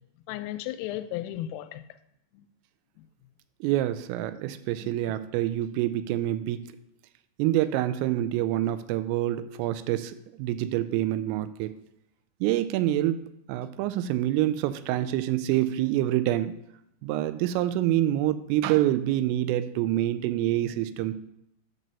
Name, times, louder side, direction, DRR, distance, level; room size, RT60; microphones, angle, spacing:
voice 1, 0.3-1.8 2.3-2.5 3.0-3.1 4.8-5.2, left 13 dB, 90° left, 3.2 m, -35 dB
voice 2, 3.6-6.6 7.4-11.7 12.4-13.2 13.5-16.5 17.0-21.1, right 13 dB, 90° right, 3.2 m, -26 dB
9.1 x 4.1 x 6.8 m
omnidirectional pair, 5.8 m